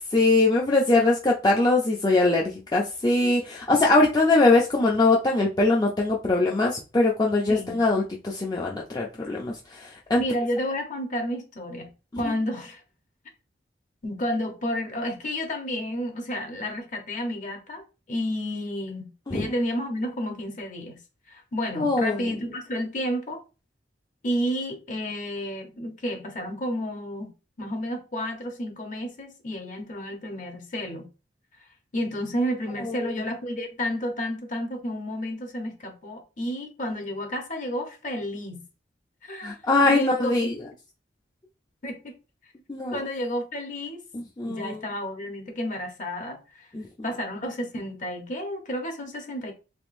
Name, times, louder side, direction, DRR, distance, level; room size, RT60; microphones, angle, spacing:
voice 1, 0.1-10.2 12.2-12.3 19.3-19.6 21.8-22.3 32.8-33.2 39.4-40.6 42.7-43.0 44.1-44.8 46.7-47.1, left 2 dB, 20° left, 0.4 m, -22 dB
voice 2, 10.1-11.9 12.2-12.8 14.0-17.8 18.1-19.0 19.3-21.0 21.3-23.4 24.2-27.3 27.6-31.1 31.9-38.6 39.3-39.6 39.9-40.5 41.8-42.1 42.9-44.0 44.4-46.7 47.0-49.5, equal, 45° left, 0.9 m, -31 dB
3.5 x 3.3 x 2.5 m
head